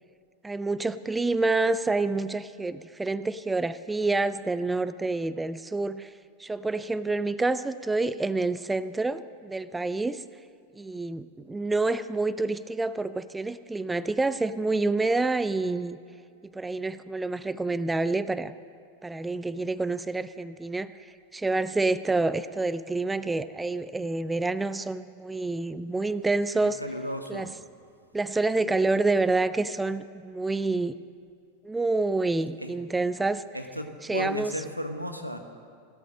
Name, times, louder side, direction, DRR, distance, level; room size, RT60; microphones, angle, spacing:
voice 1, 0.4-6.1 6.4-10.2 10.8-16.0 16.4-18.5 19.0-26.8 27.3-27.5 28.1-30.9 31.6-33.4 34.1-34.5, right 3 dB, 10° right, 15 dB, 0.4 m, -28 dB
voice 2, 26.6-27.5 32.6-32.7 33.5-35.4, equal, 90° right, 6 dB, 1.1 m, -34 dB
16.0 x 12.5 x 6.4 m, 2.3 s
figure-of-eight pair, 90°, 0 cm